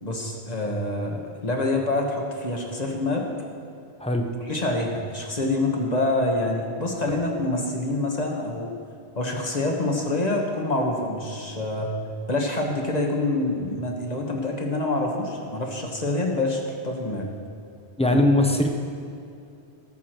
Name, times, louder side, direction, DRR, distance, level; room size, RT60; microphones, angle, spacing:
voice 1, 0.0-3.3 4.5-8.7 9.1-11.9 12.3-17.3 18.1-18.2, left 2 dB, 40° left, 1 dB, 1.5 m, -26 dB
voice 2, 18.0-18.7, left 1 dB, 5° left, 3 dB, 1.0 m, -20 dB
18.5 x 7.2 x 4.6 m, 2.5 s
omnidirectional pair, 1.1 m